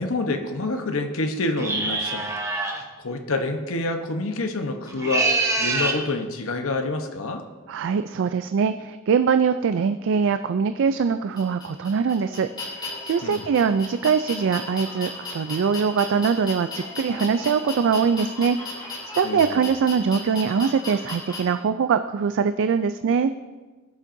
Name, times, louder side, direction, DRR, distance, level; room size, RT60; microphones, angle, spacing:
voice 1, 0.0-7.4 13.2-13.5 19.2-19.7, left 2 dB, 70° left, 5 dB, 1.0 m, -28 dB
sound 1, 1.6-2.8 4.9-6.0, right 3 dB, 15° right, 1.0 m, -25 dB
voice 2, 7.7-23.3, right 6 dB, 60° right, 10 dB, 0.3 m, -23 dB
sound 2, 11.3-21.4, left 3 dB, 20° left, 2.9 m, -35 dB
16.5 x 7.3 x 2.7 m, 1.3 s
head